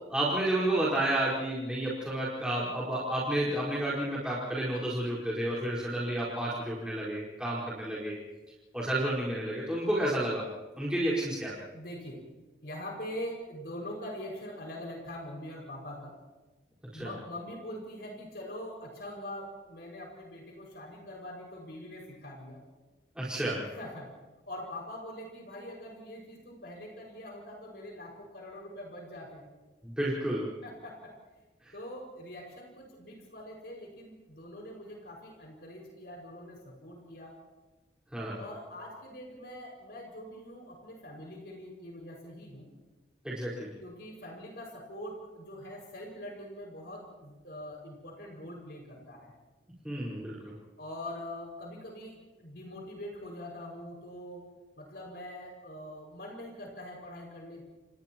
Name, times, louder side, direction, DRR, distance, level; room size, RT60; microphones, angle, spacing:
voice 1, 0.0-8.2 8.7-10.5 10.8-11.6 16.9-17.1 23.1-23.7 29.8-30.5 31.6-31.7 38.1-38.4 43.2-43.7 49.8-50.5, right 1 dB, 5° right, -8 dB, 4.9 m, -31 dB
voice 2, 11.7-12.2 12.6-16.2 16.9-22.6 23.6-24.1 24.5-29.4 30.6-31.1 31.7-37.3 38.4-42.7 43.8-49.3 50.8-54.5 54.8-57.6, left 1 dB, 60° left, -1 dB, 6.2 m, -43 dB
30.0 x 29.5 x 3.1 m, 1.2 s
head